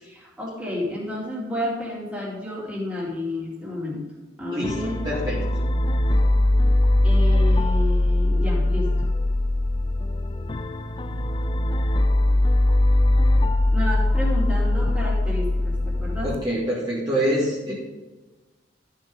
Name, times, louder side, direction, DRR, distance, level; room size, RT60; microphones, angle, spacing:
voice 1, 0.0-4.0 4.4-5.0 7.0-8.9 13.7-16.4, left 1 dB, 10° right, -5 dB, 2.8 m, -31 dB
sound 1, 4.6-16.4, left 1 dB, 25° left, 0.4 m, -21 dB
voice 2, 5.0-5.4 16.2-17.7, equal, 25° right, -8 dB, 2.1 m, -25 dB
13.0 x 6.6 x 4.0 m, 1.2 s
head